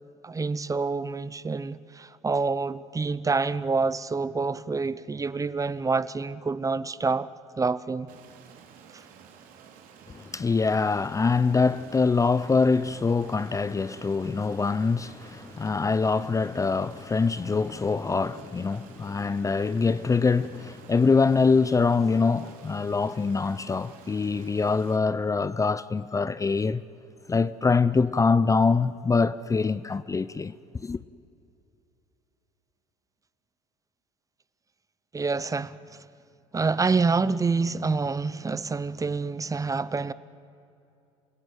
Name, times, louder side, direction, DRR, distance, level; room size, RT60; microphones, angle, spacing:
voice 1, 0.2-7.3 7.6-8.1 35.1-36.0 36.5-40.1, right 4 dB, 20° right, 0.8 m, -27 dB
Stream, 8.1-25.0, right 7 dB, 65° right, 2.7 m, -51 dB
voice 2, 10.1-26.8 27.3-31.0, left 4 dB, 20° left, 0.6 m, -24 dB
28.5 x 16.5 x 9.2 m
hypercardioid pair, 70°, 16 cm